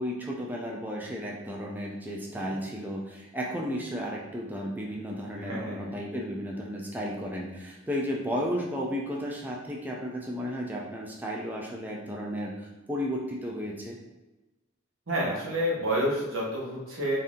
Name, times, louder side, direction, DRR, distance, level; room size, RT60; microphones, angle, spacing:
voice 1, 0.0-14.0, equal, 10° right, -2 dB, 0.4 m, -33 dB
voice 2, 2.3-2.6 5.4-5.9 15.1-17.2, equal, 85° right, -4 dB, 1.3 m, -29 dB
4.0 x 2.7 x 3.6 m, 1.1 s
head